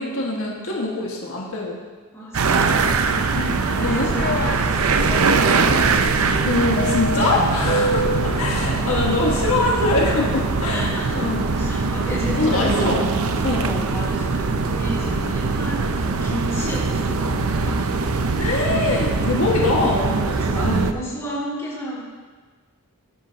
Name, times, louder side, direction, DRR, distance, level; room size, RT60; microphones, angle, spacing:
voice 1, 0.0-1.8 3.4-3.5 3.8-4.1 6.5-11.4 12.4-13.1 13.4-13.7 18.4-20.1 20.6-20.9, left 2 dB, 70° left, -3 dB, 1.7 m, -23 dB
voice 2, 2.1-2.9 3.6-3.9 4.3-6.0 7.6-7.9 8.6-8.9 10.6-11.2 11.5-12.9 13.6-17.8 19.5-19.6 20.1-22.0, equal, 15° left, -8 dB, 2.9 m, -33 dB
sound 1, 2.3-20.9, right 4 dB, 75° right, 0.6 m, -22 dB
sound 2, 3.7-4.6 6.8-8.4, equal, 40° left, 0.6 m, -26 dB
14.0 x 11.0 x 2.9 m, 1.4 s
head